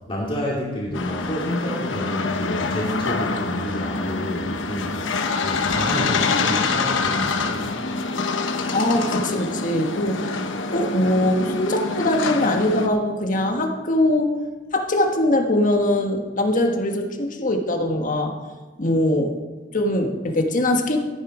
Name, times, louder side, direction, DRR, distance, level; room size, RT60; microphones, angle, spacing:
voice 1, 0.1-7.7, left 1 dB, 30° left, -4 dB, 2.4 m, -29 dB
sound 1, 0.9-12.9, left 4 dB, 90° left, 1.0 m, -25 dB
voice 2, 8.7-10.4 10.7-14.3 14.7-18.4 18.8-19.4 19.7-21.0, left 1 dB, 45° left, 3 dB, 1.5 m, -22 dB
14.5 x 10.0 x 5.0 m, 1.3 s
head